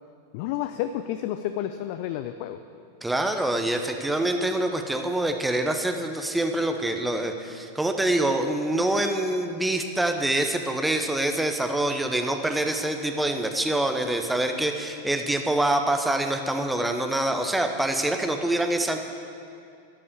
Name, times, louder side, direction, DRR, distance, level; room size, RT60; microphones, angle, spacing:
voice 1, 0.3-2.6, left 12 dB, 45° left, 9 dB, 0.4 m, -30 dB
voice 2, 3.0-19.0, right 1 dB, 5° right, 5 dB, 0.9 m, -25 dB
12.5 x 5.4 x 8.5 m, 2.6 s
figure-of-eight pair, 90°, 0 cm